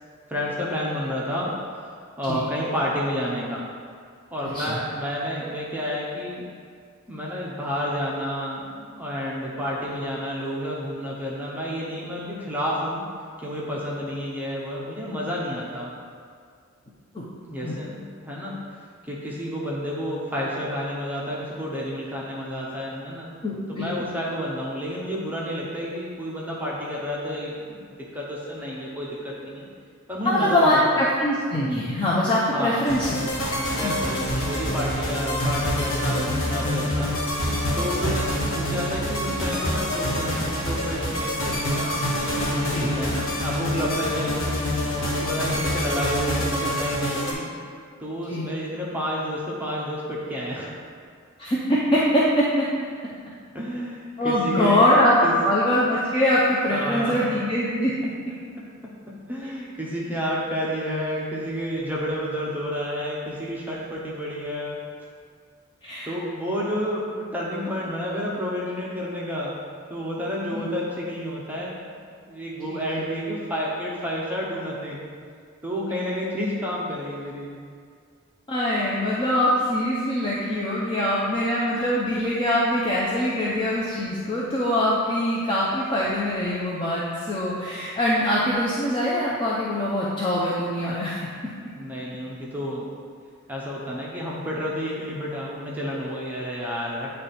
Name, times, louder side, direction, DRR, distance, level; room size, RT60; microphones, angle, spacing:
voice 1, 0.3-1.5 2.2-3.6 4.3-6.4 7.1-13.0 13.4-15.9 17.5-18.6 19.1-23.3 23.7-29.7 30.1-31.0 32.5-32.8 33.7-37.1 37.8-42.0 42.2-44.4 44.9-47.5 48.0-50.7 53.5-54.9 55.2-55.3 56.7-57.3 59.1-64.8 66.0-69.6 69.9-71.8 72.3-75.0 75.6-77.6 91.8-92.9 93.5-97.1, equal, 10° right, -5 dB, 0.7 m, -30 dB
voice 2, 23.4-23.9 30.2-33.1 33.8-33.9 36.8-36.9 38.0-38.2 42.7-42.9 48.3-48.5 51.4-52.6 54.2-57.9 65.8-66.1 70.5-70.6 72.7-72.8 78.5-91.3, left 1 dB, 25° left, -7 dB, 0.6 m, -23 dB
sound 1, 32.8-47.3, equal, 65° left, 1.3 m, -26 dB
8.5 x 3.3 x 4.2 m, 2.1 s
head